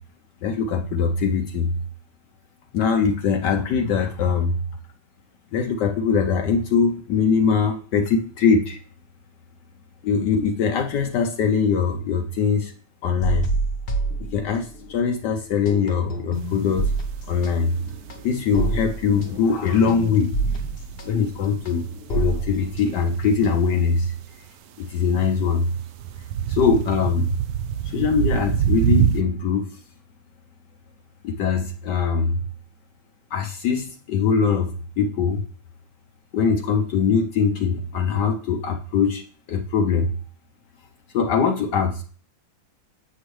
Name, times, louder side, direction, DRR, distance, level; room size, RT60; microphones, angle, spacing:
voice 1, 0.4-1.7 2.7-4.6 5.5-8.8 10.0-12.7 13.0-13.5 14.3-16.9 17.3-17.7 18.2-20.3 21.0-21.8 22.1-24.1 24.8-25.7 26.5-27.3 27.9-29.7 31.2-32.4 33.3-34.7 35.0-35.4 36.3-39.2 39.5-40.1 41.1-42.0, left 6 dB, 70° left, 5 dB, 1.2 m, -22 dB
sound 1, 13.2-14.9 15.2-23.9, right 2 dB, 50° left, 0.7 m, -28 dB
sound 2, 16.4-24.5 24.9-29.2, right 9 dB, 75° right, 0.8 m, -28 dB
8.0 x 6.4 x 3.1 m, 0.42 s
omnidirectional pair, 2.1 m